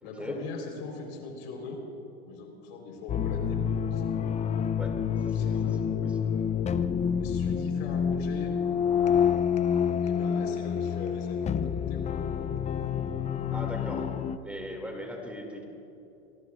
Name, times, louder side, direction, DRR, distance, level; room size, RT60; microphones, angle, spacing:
voice 1, 0.0-1.8 2.3-3.6 3.9-4.0 5.2-5.8 7.2-8.6 10.0-12.2, left 3 dB, 70° left, 2 dB, 4.0 m, -41 dB
sound 1, 3.1-14.4, left 8 dB, 20° left, 0.5 m, -28 dB
voice 2, 4.8-5.5 6.0-6.1 13.5-14.1 14.4-15.6, equal, 5° right, 1 dB, 2.4 m, -39 dB
25.5 x 18.5 x 2.4 m, 2.8 s
hypercardioid pair, 110°, 33 cm